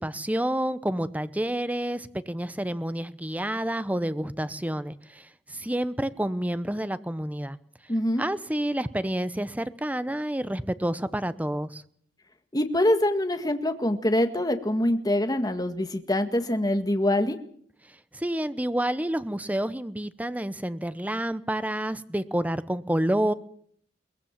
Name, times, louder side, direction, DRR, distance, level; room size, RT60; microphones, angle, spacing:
voice 1, 0.0-7.6 8.2-11.8 17.9-23.3, right 1 dB, 10° right, 14 dB, 0.9 m, -29 dB
voice 2, 7.9-8.2 12.5-17.4, left 1 dB, 20° left, 7 dB, 1.8 m, -24 dB
22.5 x 19.5 x 7.5 m, 0.64 s
head